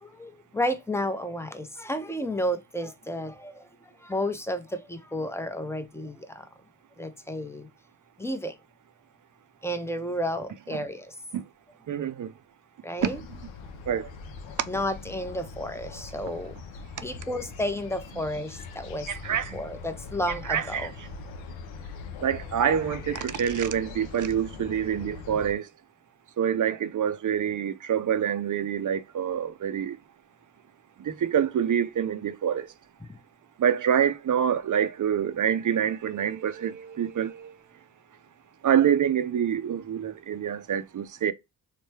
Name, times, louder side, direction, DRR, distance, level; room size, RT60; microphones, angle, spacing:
voice 1, 0.0-6.5 7.0-7.7 8.2-8.6 9.6-11.1 12.8-13.2 14.7-16.6 17.0-20.9, equal, 5° left, 0.5 m, -32 dB
voice 2, 11.9-12.3 13.0-13.2 13.9-14.1 19.1-19.6 20.5-20.9 22.2-25.7 26.4-30.0 31.0-32.7 33.6-37.5 38.6-41.3, right 9 dB, 45° right, 0.5 m, -26 dB
sound 1, 13.0-25.5, left 5 dB, 75° left, 0.6 m, -42 dB
3.2 x 2.2 x 3.1 m
supercardioid pair, 40°, 46 cm